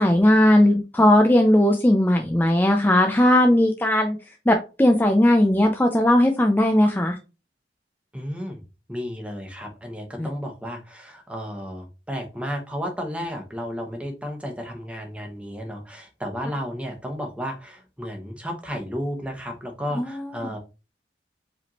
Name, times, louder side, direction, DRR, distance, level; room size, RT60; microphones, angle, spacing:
voice 1, 0.0-4.2 4.5-7.2 10.2-10.3 19.9-20.5, left 1 dB, 10° left, 3 dB, 0.4 m, -18 dB
voice 2, 8.1-8.6 8.9-20.6, equal, 5° right, 2 dB, 1.1 m, -33 dB
4.9 x 3.5 x 2.9 m, 0.30 s
head